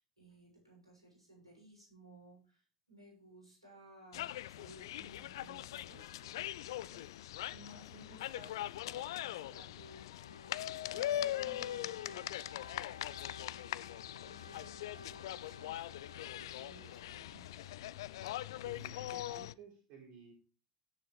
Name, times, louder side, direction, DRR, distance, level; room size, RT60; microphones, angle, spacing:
voice 1, 0.0-7.1 7.5-12.2 12.6-12.9 13.7-13.9 14.2-15.8 16.2-17.9, equal, 85° right, -2 dB, 6.9 m, -58 dB
sound 1, 4.1-19.5, left 13 dB, 65° left, 0.4 m, -41 dB
Wind instrument woodwind instrument, 10.2-17.8, left 4 dB, 85° left, 0.8 m, -55 dB
voice 2, 18.6-20.3, right 5 dB, 50° right, 1 dB, 3.6 m, -55 dB
16.5 x 7.5 x 3.3 m, 0.35 s
figure-of-eight pair, 70°, 3 cm